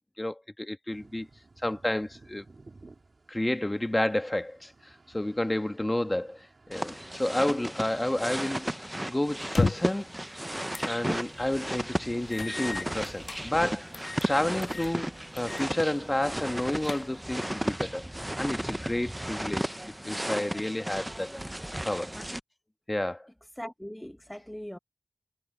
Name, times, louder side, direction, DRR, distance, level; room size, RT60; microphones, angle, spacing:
voice 1, 0.2-1.3 1.6-2.4 3.3-10.2 10.9-13.8 14.2-19.8 20.0-21.4 21.8-22.1 22.9-23.3, left 1 dB, 25° left, 1.4 m, -30 dB
sound 1, 0.9-19.6, right 3 dB, 65° right, 3.9 m, -58 dB
sound 2, 6.7-22.4, right 1 dB, 15° right, 0.6 m, -34 dB
sound 3, 9.4-10.0 10.7-11.0 11.4-11.5 12.3-13.4 13.9-14.3 14.6-14.9 15.4-15.7 16.0-16.1 16.6-17.4, left 3 dB, 70° left, 0.3 m, -32 dB
voice 2, 23.6-24.8, equal, 10° left, 1.1 m, -40 dB
wide cardioid pair, 65°, 0 cm